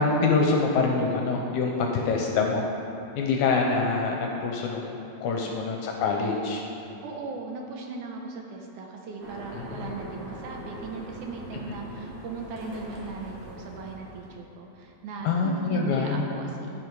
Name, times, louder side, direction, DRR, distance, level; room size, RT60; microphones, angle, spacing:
voice 1, 0.0-2.7 3.2-4.9 5.2-6.6 9.5-9.9 15.2-16.2, left 4 dB, 75° left, 1 dB, 1.9 m, -25 dB
voice 2, 5.3-5.6 7.0-16.8, right 4 dB, 75° right, 1 dB, 2.0 m, -38 dB
sound 1, 9.2-14.4, equal, 60° right, 2.9 m, -42 dB
14.5 x 5.2 x 4.7 m, 2.9 s
omnidirectional pair, 3.9 m